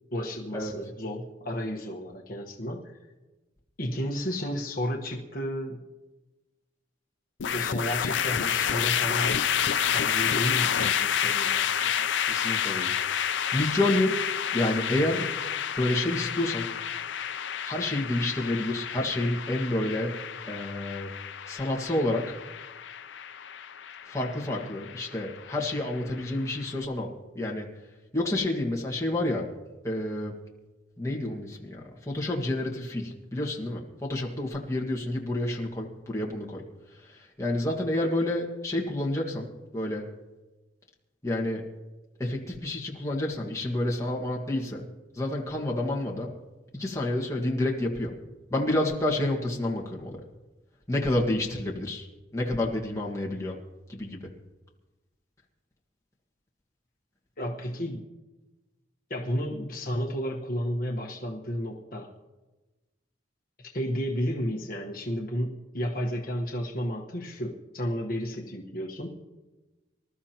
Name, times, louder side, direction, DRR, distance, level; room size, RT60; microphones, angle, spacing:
voice 1, 0.1-3.0 3.8-5.8 7.5-9.5 9.9-11.7 57.4-58.0 59.1-62.1 63.7-69.1, equal, 45° left, -1 dB, 1.3 m, -32 dB
sound 1, 7.4-26.6, left 8 dB, 75° left, 0.6 m, -30 dB
voice 2, 11.8-12.9 13.5-14.2 14.5-15.3 15.8-16.7 17.6-20.2 20.4-21.1 21.5-22.3 24.1-27.7 28.1-29.5 29.8-30.4 31.0-36.7 36.9-40.1 41.2-41.7 42.2-44.8 45.1-46.3 46.7-48.2 48.5-50.2 50.9-52.1 52.3-53.6 53.9-54.3, left 1 dB, 15° left, -2 dB, 1.7 m, -29 dB
25.5 x 13.0 x 3.0 m, 1.1 s
head